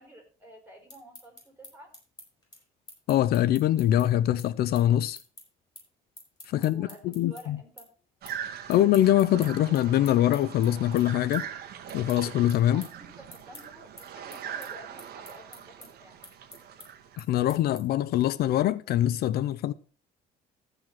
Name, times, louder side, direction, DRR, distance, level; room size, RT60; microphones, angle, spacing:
voice 1, 0.0-1.9 6.5-7.9 12.6-16.2, equal, 10° right, 4.9 m, -50 dB
sound 1, 0.7-7.4 7.8-8.4 8.7-18.1, left 2 dB, 20° left, 7.3 m, -49 dB
voice 2, 3.1-5.2 6.5-7.6 8.7-11.5 11.9-12.9 17.2-19.7, left 12 dB, 70° left, 0.5 m, -23 dB
sound 2, 8.2-17.2, right 8 dB, 65° right, 1.6 m, -41 dB
14.5 x 5.0 x 5.9 m
cardioid pair, 110°, 17 cm